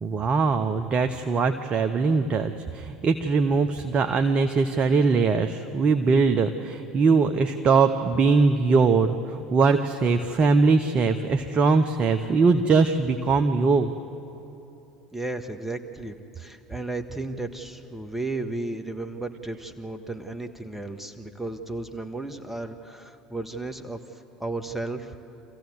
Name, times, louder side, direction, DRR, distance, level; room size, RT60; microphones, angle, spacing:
voice 1, 0.0-13.9, right 4 dB, 35° right, 7 dB, 0.9 m, -21 dB
voice 2, 15.1-25.2, right 2 dB, 5° right, 5 dB, 1.6 m, -34 dB
26.0 x 15.5 x 8.1 m, 3.0 s
figure-of-eight pair, 70°, 3 cm